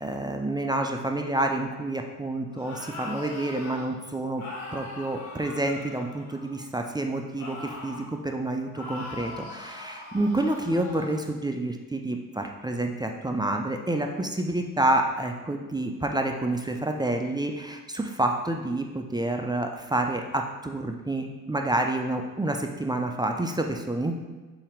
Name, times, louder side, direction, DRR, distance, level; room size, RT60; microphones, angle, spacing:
voice 1, 0.0-4.4 4.7-24.2, right 1 dB, 10° right, 3 dB, 0.6 m, -28 dB
sound 1, 2.5-3.8 4.4-6.7 7.4-8.1 8.7-11.2, left 2 dB, 85° left, 1.7 m, -41 dB
7.0 x 3.0 x 5.0 m, 1.2 s
hypercardioid pair, 55°, 43 cm